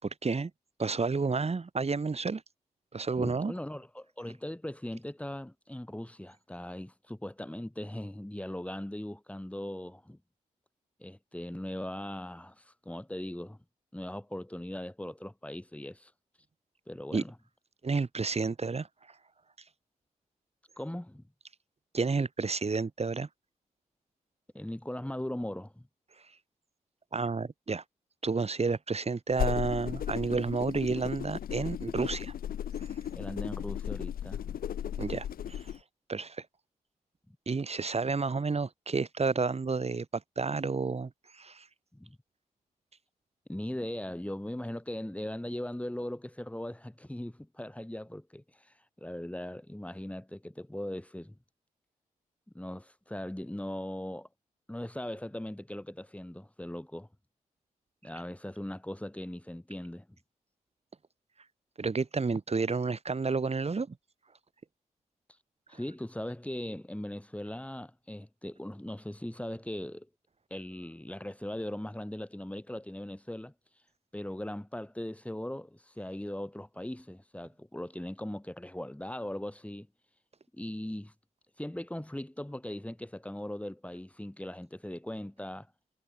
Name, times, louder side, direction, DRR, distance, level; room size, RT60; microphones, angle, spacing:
voice 1, 0.0-0.5 0.8-2.4 2.9-3.5 17.1-17.2 17.8-18.9 21.9-23.3 27.1-27.8 28.2-32.3 32.8-33.0 35.0-35.6 36.1-36.5 37.5-41.7 61.8-64.0, right 4 dB, 45° right, 6.0 m, -31 dB
voice 2, 3.2-10.2 11.0-13.6 13.9-16.1 16.9-17.3 20.8-21.2 24.5-25.9 33.1-34.6 37.3-37.4 41.9-42.2 43.5-51.4 52.5-54.3 54.7-57.1 58.0-60.1 65.7-70.1 70.5-73.5 74.1-79.9 80.5-81.1 81.6-85.7, left 1 dB, 10° left, 7.1 m, -39 dB
sound 1, 29.3-35.8, left 9 dB, 80° left, 6.2 m, -35 dB
supercardioid pair, 45°, 15 cm